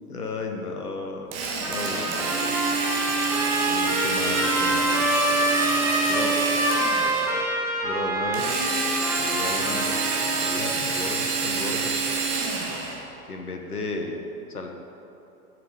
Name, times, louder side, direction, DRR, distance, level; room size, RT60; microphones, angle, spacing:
voice 1, 0.1-1.4 1.7-2.6 3.6-5.0 6.1-6.4 7.8-8.6 9.2-10.0 10.4-12.0 13.3-14.2 14.5-14.7, left 3 dB, 80° left, 3 dB, 1.2 m, -34 dB
Drill, 1.3-7.4 8.3-13.0, right 4 dB, 30° right, 1.5 m, -27 dB
Trumpet, 1.6-10.7, right 1 dB, 5° right, 0.9 m, -27 dB
sound 1, 4.3-7.4, left 2 dB, 75° right, 2.1 m, -37 dB
10.5 x 6.0 x 4.9 m, 2.8 s
figure-of-eight pair, 105°, 45 cm